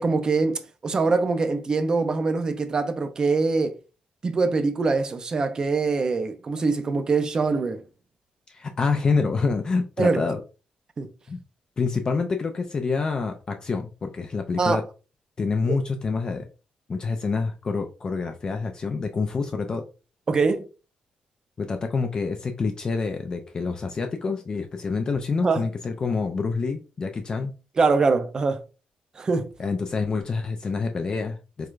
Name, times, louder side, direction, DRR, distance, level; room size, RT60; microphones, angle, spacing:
voice 1, 0.0-3.8 4.2-7.8 10.0-10.2 11.0-11.1 14.6-14.8 15.7-15.8 20.3-20.7 25.4-25.6 27.8-28.6 29.2-29.5, right 4 dB, 30° right, 0.4 m, -23 dB
voice 2, 8.5-10.4 11.3-11.4 11.8-14.8 15.4-16.5 16.9-19.8 21.6-27.5 29.6-31.7, left 4 dB, 30° left, 0.4 m, -27 dB
4.6 x 2.2 x 2.4 m
wide cardioid pair, 155°, 3 cm